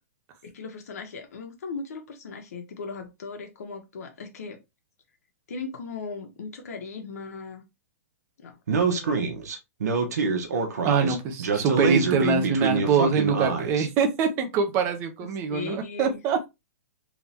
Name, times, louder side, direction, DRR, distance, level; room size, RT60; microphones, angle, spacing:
voice 1, 0.4-4.6 5.5-7.6 8.4-9.3 15.2-16.2, left 4 dB, 70° left, 1.3 m, -38 dB
Speech, 8.7-13.9, right 5 dB, 80° right, 1.1 m, -25 dB
voice 2, 10.8-16.5, right 5 dB, 25° right, 0.8 m, -24 dB
3.5 x 2.8 x 3.3 m
hypercardioid pair, 155°, 9 cm